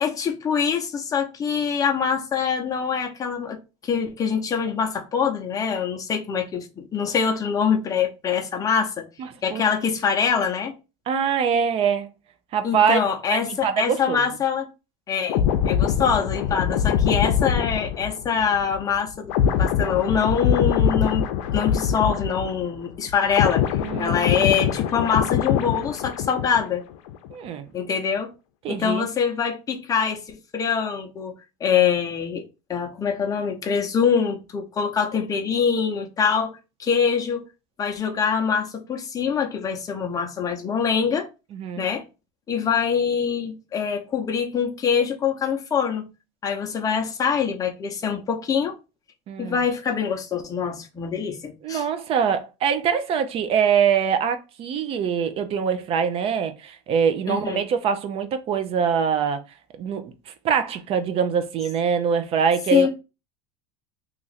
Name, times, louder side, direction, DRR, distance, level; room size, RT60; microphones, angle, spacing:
voice 1, 0.0-3.6 3.8-9.1 9.4-10.7 12.6-14.7 15.1-19.3 19.6-21.3 21.5-23.6 24.0-26.8 27.7-28.3 28.7-31.3 31.6-32.4 32.7-37.4 37.8-41.3 41.8-42.0 42.5-46.1 46.4-48.8 49.4-51.8 57.3-57.6 62.7-62.9, left 7 dB, 20° left, 0.7 m, -24 dB
voice 2, 9.2-9.6 11.1-12.1 12.5-13.0 13.3-14.2 23.8-24.6 27.3-27.7 28.6-29.1 41.5-41.8 49.3-49.6 51.6-59.4 59.8-62.9, right 7 dB, 35° right, 0.4 m, -24 dB
sound 1, 15.3-22.8 23.1-26.8 27.1-27.3, left 8 dB, 80° left, 0.5 m, -23 dB
2.9 x 2.5 x 4.0 m
supercardioid pair, 140°, 16 cm